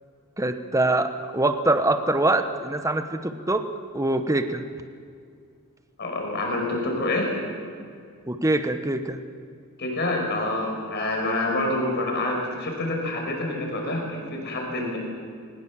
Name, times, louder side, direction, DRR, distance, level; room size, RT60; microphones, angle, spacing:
voice 1, 0.4-3.6 3.9-4.6 8.3-9.2, right 2 dB, 15° right, 8 dB, 1.0 m, -24 dB
voice 2, 6.0-7.3 9.8-15.0, left 2 dB, 50° left, 1 dB, 5.3 m, -27 dB
21.0 x 20.0 x 7.4 m, 2.2 s
head